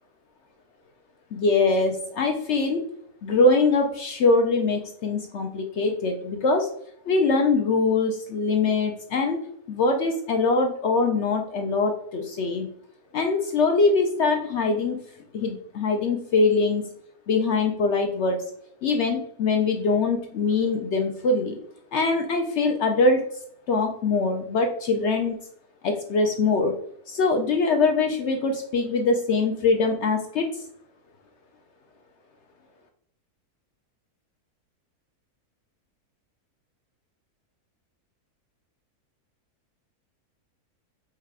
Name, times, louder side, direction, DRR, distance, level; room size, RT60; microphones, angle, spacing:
voice 1, 1.3-2.9 3.2-6.7 7.1-9.4 9.7-12.7 13.1-15.0 15.3-16.8 17.3-18.4 18.8-21.6 21.9-23.2 23.7-25.4 25.8-26.7 27.1-30.6, left 3 dB, 70° left, 4 dB, 0.7 m, -23 dB
4.8 x 2.2 x 4.7 m, 0.67 s
omnidirectional pair, 1.6 m